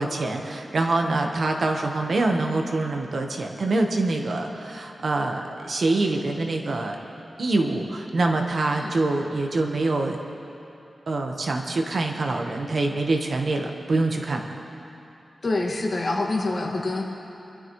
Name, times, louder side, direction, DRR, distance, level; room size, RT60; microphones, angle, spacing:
voice 1, 0.0-7.0 7.4-10.2 11.1-14.5, right 2 dB, 55° right, 3 dB, 1.2 m, -25 dB
voice 2, 15.4-17.0, left 2 dB, 45° left, -1 dB, 1.9 m, -26 dB
26.5 x 12.0 x 3.2 m, 2.8 s
wide cardioid pair, 130°, 0 cm